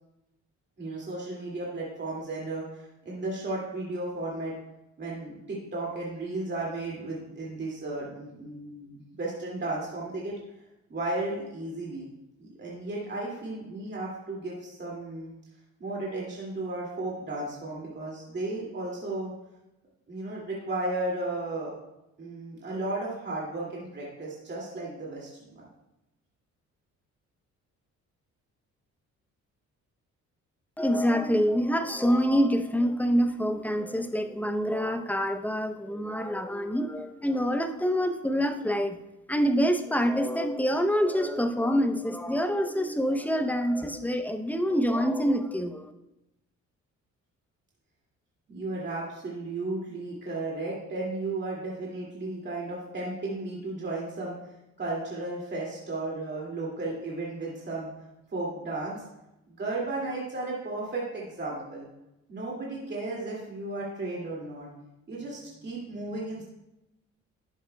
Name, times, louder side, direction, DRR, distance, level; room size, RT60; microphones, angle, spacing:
voice 1, 0.8-4.5 5.0-10.4 10.9-12.1 12.4-15.3 15.8-19.3 20.1-21.8 22.2-25.7 48.5-54.3 54.8-57.9 58.3-59.0 59.5-61.9 62.3-64.7 65.1-66.4, right 2 dB, 35° right, -4 dB, 2.3 m, -34 dB
voice 2, 30.8-39.0 39.3-45.9, equal, 5° left, 7 dB, 0.6 m, -26 dB
11.0 x 7.4 x 2.2 m, 0.90 s
cardioid pair, 90°, 30 cm